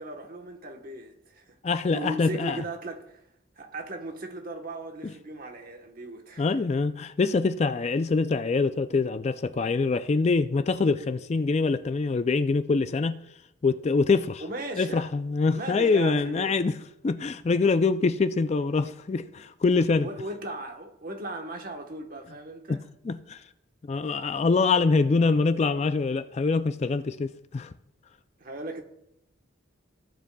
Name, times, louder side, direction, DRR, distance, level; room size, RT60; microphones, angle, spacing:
voice 1, 0.0-3.2 3.6-6.4 14.4-15.1 15.5-16.6 20.0-22.8 28.4-28.8, right 2 dB, 45° right, 1.2 m, -37 dB
voice 2, 1.6-2.6 5.0-5.1 6.4-13.2 13.6-14.4 14.8-16.8 17.0-20.1 22.7-22.8 23.0-23.4 23.8-27.7, left 4 dB, 35° left, 0.3 m, -24 dB
16.0 x 7.4 x 2.3 m
head